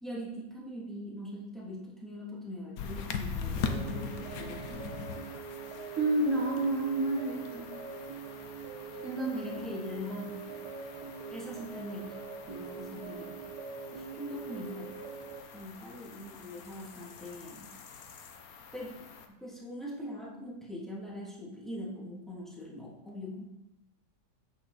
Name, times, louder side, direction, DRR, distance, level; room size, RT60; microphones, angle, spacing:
voice 1, 0.0-4.8 9.3-10.3 11.3-12.2 12.5-13.4 13.9-14.9 15.5-17.8 18.7-23.4, left 1 dB, ahead, -5 dB, 2.6 m, -42 dB
sound 1, 2.8-19.3, left 5 dB, 65° left, 1.3 m, -42 dB
sound 2, 3.7-15.4, right 6 dB, 75° right, 1.6 m, -43 dB
voice 2, 6.0-7.7 9.0-9.5, right 2 dB, 50° right, -1 dB, 1.5 m, -29 dB
9.3 x 8.5 x 4.2 m, 0.96 s
omnidirectional pair, 1.8 m